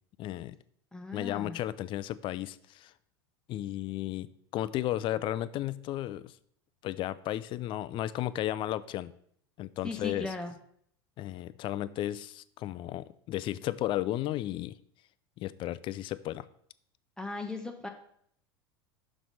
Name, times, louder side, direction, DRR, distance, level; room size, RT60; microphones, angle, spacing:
voice 1, 0.2-0.6 1.1-2.9 3.5-6.4 6.8-9.1 9.6-10.3 11.2-14.8 15.4-16.5, left 13 dB, 40° left, 17 dB, 0.4 m, -34 dB
voice 2, 0.9-1.6 9.8-10.5 17.2-17.9, left 3 dB, 5° left, 4 dB, 0.7 m, -37 dB
5.9 x 5.8 x 4.0 m, 0.65 s
hypercardioid pair, 90°, 13 cm